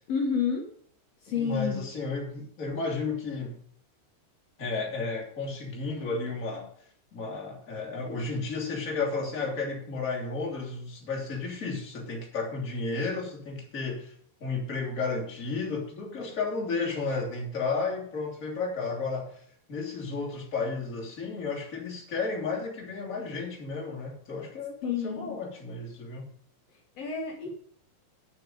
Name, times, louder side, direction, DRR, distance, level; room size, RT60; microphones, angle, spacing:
voice 1, 0.1-0.7 1.2-1.8 24.8-25.4 26.9-27.5, left 6 dB, 75° left, 0 dB, 1.4 m, -29 dB
voice 2, 1.4-3.6 4.6-6.7 7.1-14.1 14.4-19.4 19.7-26.3, left 4 dB, 25° left, -1 dB, 2.2 m, -33 dB
9.1 x 6.8 x 7.7 m, 0.62 s
omnidirectional pair, 5.1 m